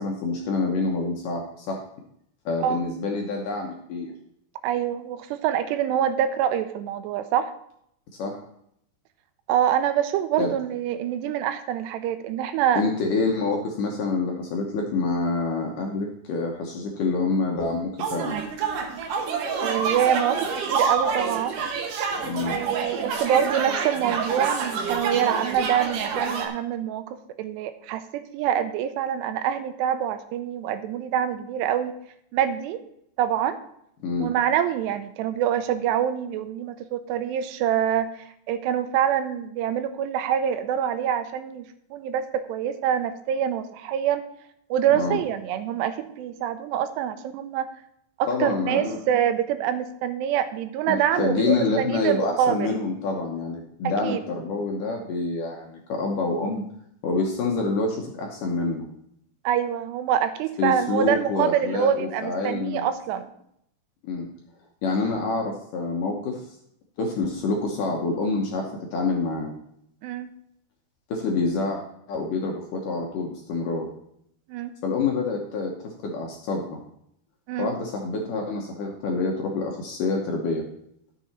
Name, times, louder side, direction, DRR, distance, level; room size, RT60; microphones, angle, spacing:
voice 1, 0.0-1.8 2.5-4.1 8.2-8.4 10.4-10.5 12.8-18.4 22.2-22.6 34.0-34.3 44.9-45.2 48.3-49.0 50.9-56.6 57.0-58.9 60.6-62.9 64.0-64.3 64.8-66.4 67.0-69.5 71.1-71.8 72.1-73.9 74.8-76.8 77.6-80.6, left 3 dB, 70° left, 1 dB, 2.1 m, -27 dB
voice 2, 4.6-7.5 9.5-12.8 19.6-21.6 22.5-32.0 32.3-32.8 33.2-33.6 34.2-38.1 38.5-44.2 44.7-47.7 48.2-52.7 54.0-54.2 59.4-63.3 70.0-70.3 74.5-74.8 77.5-77.7, right 9 dB, 85° right, 10 dB, 2.8 m, -25 dB
sound 1, 18.0-26.5, right 5 dB, 65° right, 2.3 m, -27 dB
12.0 x 6.9 x 4.3 m, 0.73 s
omnidirectional pair, 5.0 m